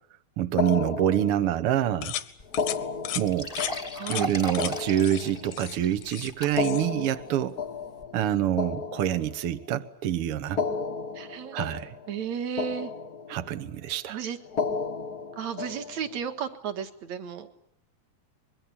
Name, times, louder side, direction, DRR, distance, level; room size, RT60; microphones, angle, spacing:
voice 1, 0.4-2.1 3.1-3.5 4.1-7.6 8.1-10.6 11.5-11.9 13.3-14.2, right 11 dB, 75° right, 9 dB, 1.3 m, -26 dB
sound 1, 0.6-1.8 2.5-5.8 6.4-9.7 10.4-12.3 12.6-13.6 14.4-16.3, left 5 dB, 60° left, 1.0 m, -34 dB
sound 2, 2.0-2.3 2.5-2.8 3.0-3.2 3.6-3.7 4.1-4.3 4.5-4.7 5.0-5.2 5.5-6.3 6.6-6.9, left 12 dB, 75° left, 2.8 m, -34 dB
sound 3, 2.4-2.5 2.8-2.9 3.3-6.9 7.3-7.4 8.0-8.1, right 1 dB, 25° left, 0.9 m, -37 dB
voice 2, 3.9-4.3 11.2-11.6 12.1-12.9 14.1-14.4 15.4-17.5, right 8 dB, 55° right, 7 dB, 2.5 m, -33 dB
25.0 x 22.0 x 8.6 m, 0.71 s
omnidirectional pair, 4.2 m